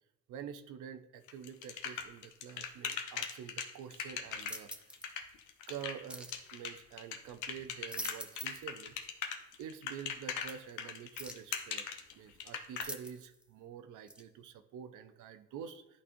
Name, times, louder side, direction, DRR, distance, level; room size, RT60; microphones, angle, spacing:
voice 1, 0.3-4.7 5.7-8.9 9.6-11.9 12.1-16.0, right 8 dB, 80° right, 10 dB, 0.6 m, -47 dB
sound 1, 1.3-12.8, left 7 dB, 85° left, 0.8 m, -40 dB
sound 2, 4.4-5.1 6.1-6.4 7.6-8.7 9.0-9.1 10.5-10.6 11.2-11.5 12.8-13.4 14.1-14.2, right 1 dB, 5° right, 0.6 m, -45 dB
11.0 x 4.2 x 2.6 m, 0.92 s
cardioid pair, 90°, 30 cm